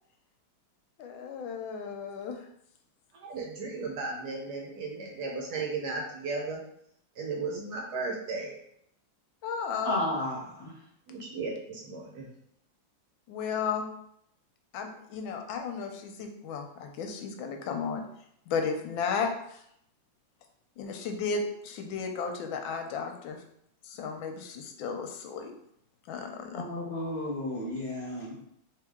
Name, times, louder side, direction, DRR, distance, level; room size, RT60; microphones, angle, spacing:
voice 1, 1.0-2.5 9.4-10.0 13.3-13.9 14.7-18.0 18.5-19.6 20.8-23.4 23.8-25.5 26.1-26.6, left 5 dB, 90° left, 4 dB, 1.4 m, -34 dB
voice 2, 3.1-6.6 7.2-8.5 11.1-12.3, right 3 dB, 60° right, -1 dB, 1.3 m, -35 dB
voice 3, 9.8-10.7 26.5-28.3, left 1 dB, 35° left, -5 dB, 1.1 m, -32 dB
3.7 x 3.2 x 3.5 m, 0.72 s
omnidirectional pair, 2.1 m